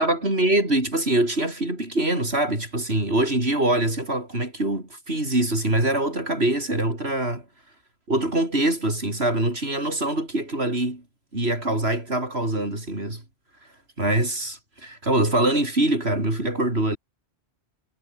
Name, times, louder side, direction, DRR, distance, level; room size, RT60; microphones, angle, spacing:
voice 1, 0.0-7.4 8.1-11.0 11.3-13.2 14.0-17.0, right 1 dB, 85° right, 6.9 m, -24 dB
omnidirectional pair, 1.0 m